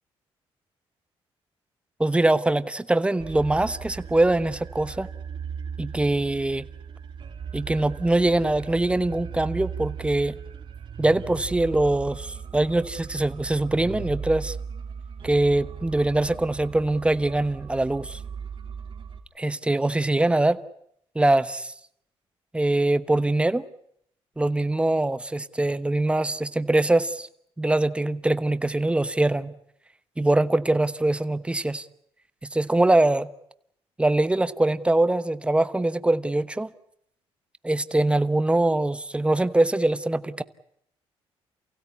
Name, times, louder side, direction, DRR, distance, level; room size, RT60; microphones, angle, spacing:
voice 1, 2.0-5.1 5.8-6.7 7.5-10.4 11.0-14.6 15.2-18.2 19.4-20.6 21.1-21.7 22.5-23.6 24.4-27.3 27.6-29.5 30.2-31.9 32.4-33.3 34.0-36.7 37.6-40.4, right 2 dB, 10° right, 1.1 m, -23 dB
sound 1, 3.2-19.2, right 7 dB, 50° right, 2.5 m, -38 dB
28.5 x 16.5 x 9.8 m
cardioid pair, 100°, 10 cm